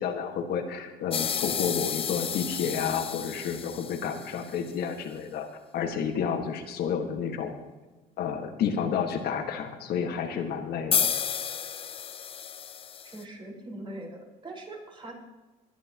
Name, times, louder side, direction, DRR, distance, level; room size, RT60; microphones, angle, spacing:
voice 1, 0.0-5.5 5.7-7.5 8.2-11.1, left 7 dB, 70° left, 3 dB, 1.8 m, -30 dB
sound 1, 1.1-4.6 10.9-13.2, left 8 dB, 35° left, 0.5 m, -31 dB
voice 2, 13.0-15.1, right 1 dB, 30° right, -2 dB, 5.1 m, -41 dB
20.5 x 11.0 x 3.0 m, 1.2 s
cardioid pair, 110°, 17 cm